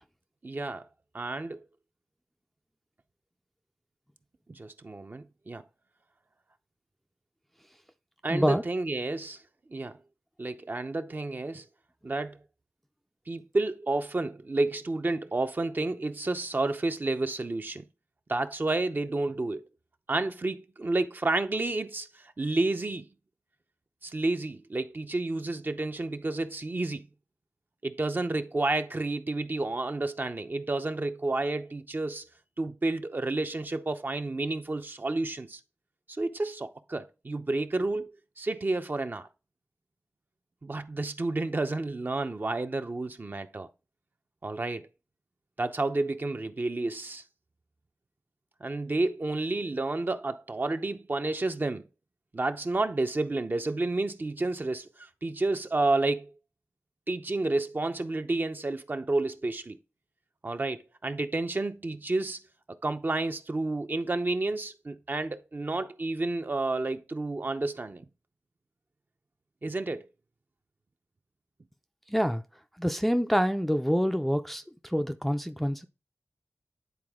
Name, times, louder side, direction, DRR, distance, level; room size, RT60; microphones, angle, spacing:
voice 1, 0.4-0.8 1.1-1.6 4.5-5.6 8.2-9.4 9.7-10.0 10.4-11.6 12.0-12.4 13.3-17.8 18.3-19.6 20.1-23.1 24.0-27.1 27.8-32.3 32.6-35.6 36.1-38.1 38.4-39.3 40.6-43.7 44.4-44.9 45.6-47.2 48.6-51.8 52.3-56.3 57.1-59.8 60.4-62.4 62.8-68.1 69.6-70.1, right 2 dB, 40° right, 0.7 m, -30 dB
voice 2, 8.3-8.6 72.1-72.4 72.8-75.9, equal, ahead, 0.5 m, -26 dB
9.6 x 4.1 x 3.6 m
wide cardioid pair, 70°, 5 cm